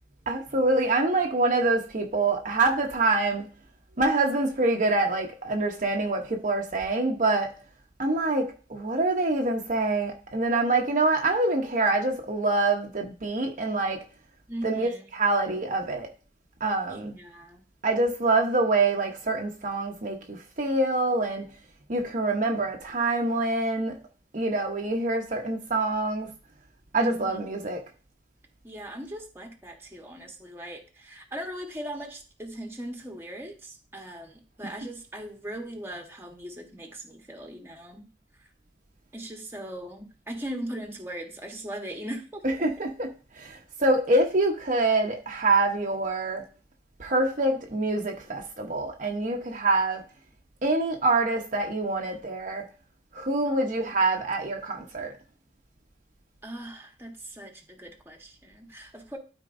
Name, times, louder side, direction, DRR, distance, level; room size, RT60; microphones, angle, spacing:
voice 1, 0.3-3.5 4.0-7.6 8.0-14.0 14.6-16.1 16.6-17.2 17.8-21.5 21.9-24.0 24.3-26.3 26.9-27.8 42.4-46.4 47.0-50.0 50.6-52.6 53.1-55.1, right 2 dB, 45° right, 0.9 m, -25 dB
voice 2, 14.5-15.1 16.9-17.6 26.9-27.4 28.6-38.1 39.1-42.6 53.4-54.2 56.4-59.2, right 1 dB, 15° right, 1.3 m, -39 dB
12.5 x 4.5 x 2.6 m
head